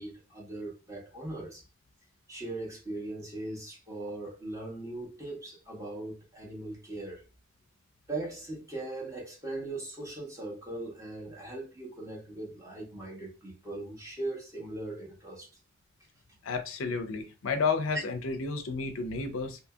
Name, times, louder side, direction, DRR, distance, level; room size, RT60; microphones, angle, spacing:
voice 1, 0.0-1.6 2.3-7.2 8.1-15.5, right 2 dB, 15° right, 1.0 m, -39 dB
voice 2, 16.4-19.6, left 4 dB, 85° left, 0.5 m, -31 dB
2.7 x 2.7 x 2.2 m
head